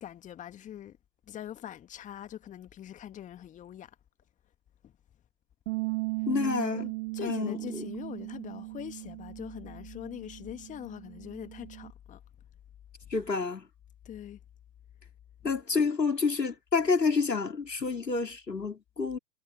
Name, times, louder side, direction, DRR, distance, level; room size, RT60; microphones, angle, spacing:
voice 1, 0.0-1.0 1.3-4.0 6.4-12.2 14.1-14.4, left 11 dB, 15° left, 2.0 m, -43 dB
Bass guitar, 5.7-11.9, right 25 dB, 30° right, 1.4 m, -37 dB
voice 2, 6.3-6.9 7.2-7.9 13.1-13.7 15.4-19.2, left 4 dB, 80° left, 3.1 m, -29 dB
figure-of-eight pair, 115°, 49 cm